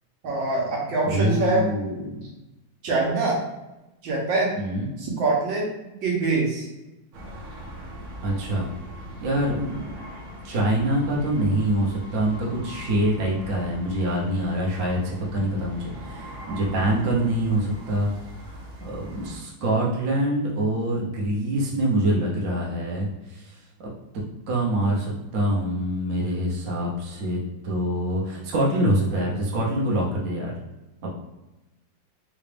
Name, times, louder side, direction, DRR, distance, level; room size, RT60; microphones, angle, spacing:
voice 1, 0.2-1.6 2.8-3.4 4.0-4.5 5.0-5.6 6.0-6.7, right 3 dB, 70° right, -3 dB, 1.5 m, -24 dB
voice 2, 1.1-2.2 4.6-4.9 8.2-8.7 9.2-9.9 10.4-18.1 18.4-23.5 24.5-30.5 31.0-31.1, right 1 dB, 55° right, -3 dB, 1.0 m, -25 dB
sound 1, 7.1-19.4, equal, 90° right, 1.8 m, -40 dB
3.9 x 2.4 x 3.3 m, 0.99 s
omnidirectional pair, 2.2 m